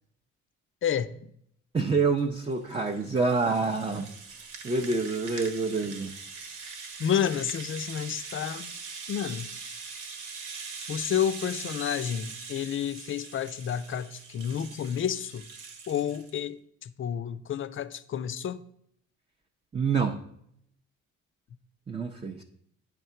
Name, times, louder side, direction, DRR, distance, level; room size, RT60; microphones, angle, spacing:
voice 1, 0.8-1.3 7.0-8.7 9.1-9.5 10.9-15.5 15.9-18.6, left 9 dB, 45° left, 0.5 m, -30 dB
voice 2, 1.7-4.1 4.6-6.1 19.7-20.2 21.9-22.4, right 4 dB, 20° right, 0.6 m, -27 dB
Rattle (instrument), 2.2-16.4, right 5 dB, 85° right, 1.4 m, -42 dB
9.2 x 3.6 x 5.7 m
cardioid pair, 90°, 30 cm